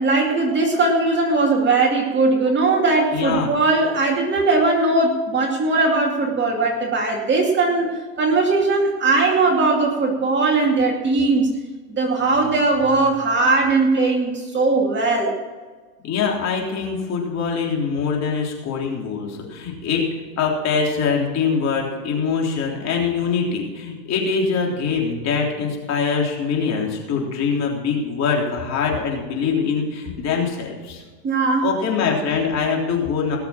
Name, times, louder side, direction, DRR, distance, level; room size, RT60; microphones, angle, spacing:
voice 1, 0.0-7.9 8.2-11.5 11.9-15.4 31.2-31.7, right 3 dB, 20° right, 1 dB, 2.4 m, -19 dB
voice 2, 3.1-3.5 16.0-20.1 20.4-31.0 31.6-33.4, left 5 dB, 30° left, 0 dB, 3.5 m, -23 dB
19.0 x 7.0 x 5.9 m, 1.4 s
hypercardioid pair, 125°, 49 cm